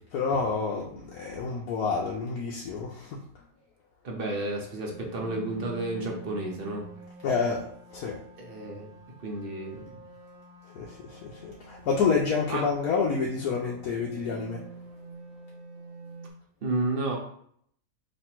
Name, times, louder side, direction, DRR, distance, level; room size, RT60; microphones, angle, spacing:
voice 1, 0.1-3.2 7.2-7.7 7.9-8.1 10.7-14.6, left 5 dB, 80° left, -2 dB, 1.1 m, -28 dB
voice 2, 4.0-6.8 8.4-8.9 9.2-9.8 12.5-12.6 16.6-17.2, right 2 dB, 45° right, 0 dB, 0.8 m, -31 dB
sound 1, 4.9-16.3, right 5 dB, 75° right, 0.5 m, -47 dB
3.3 x 2.4 x 4.3 m, 0.64 s
omnidirectional pair, 1.6 m